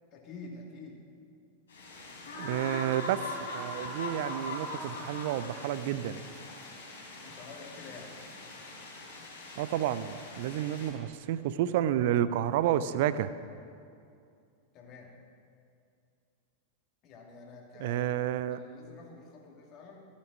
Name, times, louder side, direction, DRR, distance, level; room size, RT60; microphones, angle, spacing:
voice 1, 0.1-1.0 7.2-8.1 14.7-15.2 17.0-18.0 18.5-20.1, left 3 dB, 35° left, 0 dB, 2.2 m, -48 dB
sound 1, 1.7-10.9, left 2 dB, 65° left, 3.3 m, -41 dB
voice 2, 2.4-3.2 3.5-6.2 9.6-13.3 17.8-18.6, right 11 dB, 50° right, 15 dB, 0.5 m, -30 dB
15.0 x 8.5 x 6.2 m, 2.4 s
figure-of-eight pair, 90°, 0 cm